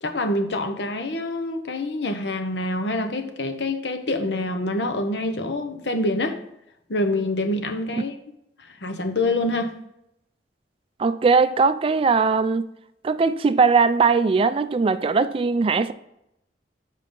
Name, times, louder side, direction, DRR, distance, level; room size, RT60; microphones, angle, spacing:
voice 1, 0.0-6.4 6.9-8.1 8.7-9.7, left 2 dB, 80° left, 0.9 m, -26 dB
voice 2, 11.0-12.7 13.0-15.9, right 4 dB, 30° right, 0.3 m, -20 dB
7.4 x 5.6 x 3.8 m
head